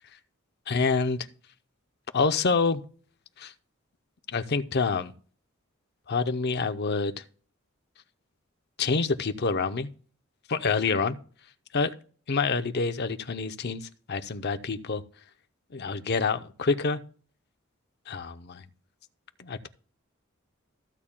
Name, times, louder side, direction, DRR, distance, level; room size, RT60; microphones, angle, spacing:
voice 1, 0.7-1.2 2.1-2.8 3.4-3.5 4.3-5.1 6.1-7.2 8.8-9.9 10.5-11.2 11.7-11.9 12.3-15.0 15.7-17.0 18.1-18.6 19.4-19.7, left 4 dB, 55° left, 0.7 m, -27 dB
14.5 x 8.5 x 2.2 m
head